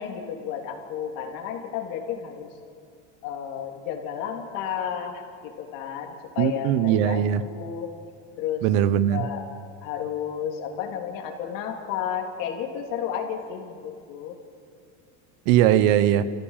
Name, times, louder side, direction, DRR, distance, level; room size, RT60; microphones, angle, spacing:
voice 1, 0.0-2.5 3.2-7.9 8.4-8.7 9.1-9.4 9.8-14.4, left 8 dB, 60° left, 3.3 m, -32 dB
voice 2, 6.4-7.5 8.6-9.3 15.5-16.2, right 11 dB, 60° right, 1.1 m, -20 dB
29.5 x 15.5 x 7.4 m
cardioid pair, 150°, 37 cm